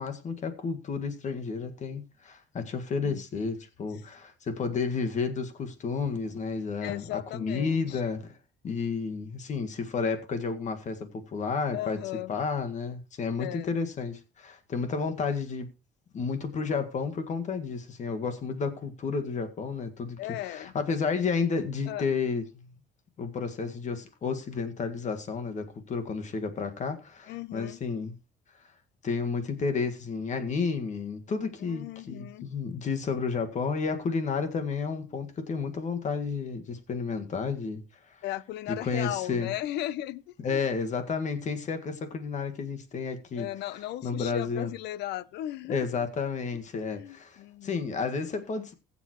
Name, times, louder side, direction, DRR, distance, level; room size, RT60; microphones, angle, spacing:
voice 1, 0.0-7.0 7.3-8.3 8.6-12.0 12.3-15.7 16.1-22.7 23.2-28.2 29.0-37.8 38.8-39.5 40.4-43.5 44.0-44.7 45.7-48.7, left 5 dB, 45° left, 1.8 m, -31 dB
voice 2, 6.8-8.0 11.7-12.3 13.4-13.7 20.2-20.7 21.9-22.1 27.3-27.8 31.6-32.5 38.2-40.2 40.5-40.6 43.4-45.9 46.7-47.8, left 14 dB, 80° left, 0.7 m, -36 dB
21.0 x 7.2 x 3.1 m
cardioid pair, 110°, 17 cm